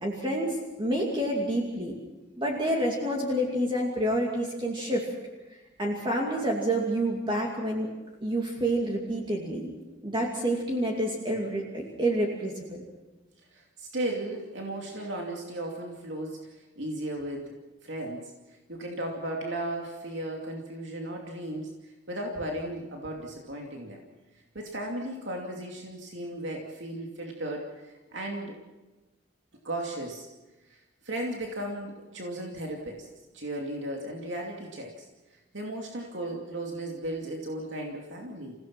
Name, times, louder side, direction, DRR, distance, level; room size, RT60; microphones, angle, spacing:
voice 1, 0.0-2.0 2.4-5.1 5.8-7.9 8.2-9.7 10.0-12.8, right 1 dB, 25° right, -1 dB, 2.5 m, -28 dB
voice 2, 13.5-17.5 17.8-24.0 24.5-28.5 29.6-30.3 30.7-33.1 33.3-35.1 35.5-38.5, right 1 dB, 85° right, 0 dB, 2.6 m, -36 dB
28.5 x 17.0 x 6.1 m, 1.1 s
head